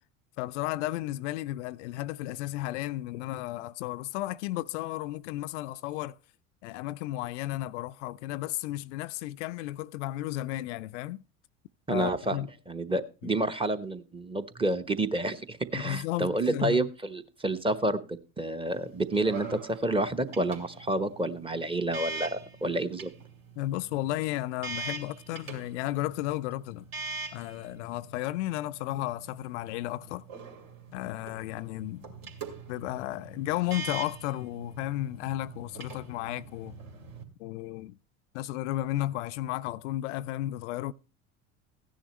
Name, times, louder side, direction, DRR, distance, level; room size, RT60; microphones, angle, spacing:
voice 1, 0.4-6.2 6.6-11.2 11.9-12.5 13.2-13.3 15.7-16.9 23.6-26.9 27.3-30.3 30.9-32.1 32.7-36.7 37.4-38.0 38.3-40.9, left 16 dB, 60° left, 0.5 m, -33 dB
voice 2, 11.9-12.4 12.7-18.0 18.4-23.1, right 2 dB, 15° right, 1.0 m, -29 dB
sound 1, 18.7-37.2, right 4 dB, 55° right, 2.6 m, -43 dB
15.5 x 10.0 x 3.0 m
hypercardioid pair, 75°, 41 cm